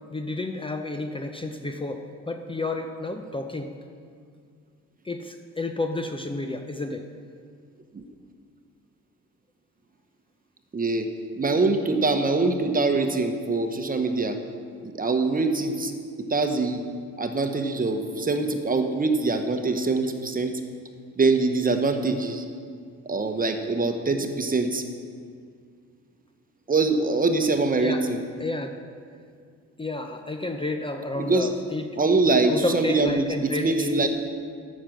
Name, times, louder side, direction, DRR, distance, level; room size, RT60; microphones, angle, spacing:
voice 1, 0.1-3.7 5.0-7.1 27.8-28.1 28.4-28.7 29.8-32.0 32.5-34.0, left 2 dB, 15° left, 5 dB, 0.7 m, -31 dB
voice 2, 10.7-11.1 11.4-14.4 14.8-15.9 16.2-16.8 17.2-20.5 21.2-22.4 23.0-24.8 26.7-28.2 31.1-31.5 32.0-34.1, right 3 dB, 30° right, 6 dB, 1.0 m, -24 dB
10.0 x 7.4 x 6.5 m, 2.1 s
cardioid pair, 90°, 30 cm